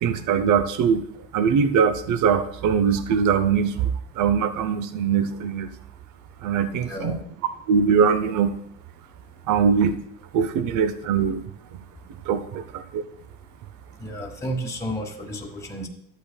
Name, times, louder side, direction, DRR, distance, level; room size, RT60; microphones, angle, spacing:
voice 1, 0.0-1.0 1.3-5.7 6.4-7.2 7.7-8.6 9.5-10.0 10.3-11.4 12.3-13.0, right 6 dB, 55° right, 11 dB, 0.8 m, -22 dB
voice 2, 6.8-7.2 14.0-15.9, equal, 10° left, 0 dB, 1.3 m, -32 dB
12.5 x 8.4 x 2.3 m, 0.72 s
supercardioid pair, 100°, 37 cm